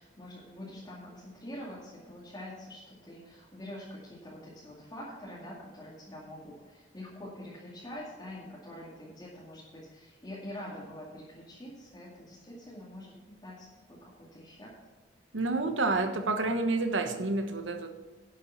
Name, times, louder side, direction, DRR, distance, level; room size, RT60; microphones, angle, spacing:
voice 1, 0.0-14.8, left 1 dB, 25° left, -7 dB, 2.3 m, -45 dB
voice 2, 15.3-17.9, right 3 dB, 85° right, 7 dB, 1.2 m, -29 dB
11.0 x 7.3 x 5.7 m, 1.4 s
head